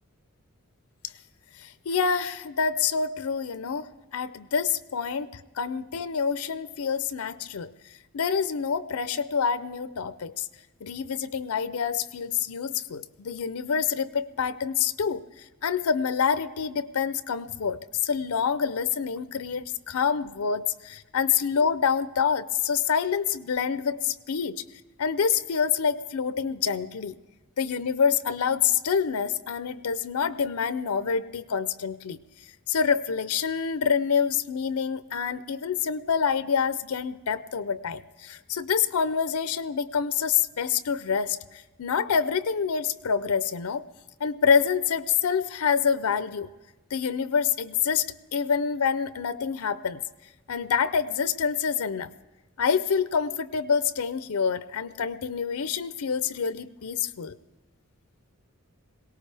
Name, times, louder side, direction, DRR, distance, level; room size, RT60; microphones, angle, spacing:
voice 1, 1.6-7.7 8.1-10.5 10.8-15.2 15.6-24.6 25.0-27.2 27.6-32.2 32.7-43.8 44.2-46.5 46.9-48.1 48.3-50.0 50.5-52.1 52.6-57.4, left 6 dB, 85° left, 14 dB, 0.5 m, -27 dB
22.0 x 18.0 x 3.4 m, 1.1 s
head